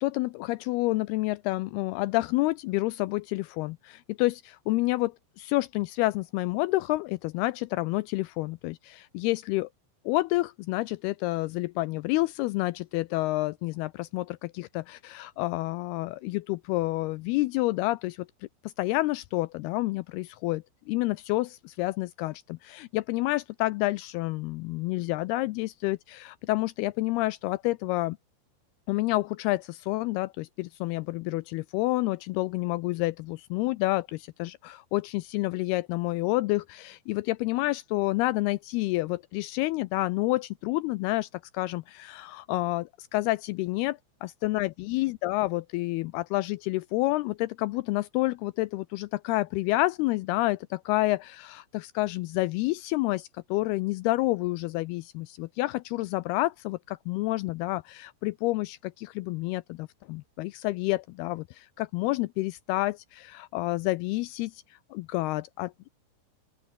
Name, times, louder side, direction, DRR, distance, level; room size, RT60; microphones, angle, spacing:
voice 1, 0.0-9.7 10.1-18.3 18.8-28.2 28.9-41.3 41.5-43.9 44.2-64.5 64.9-65.9, left 19 dB, 85° left, 2.2 m, -29 dB
open air
omnidirectional pair, 5.1 m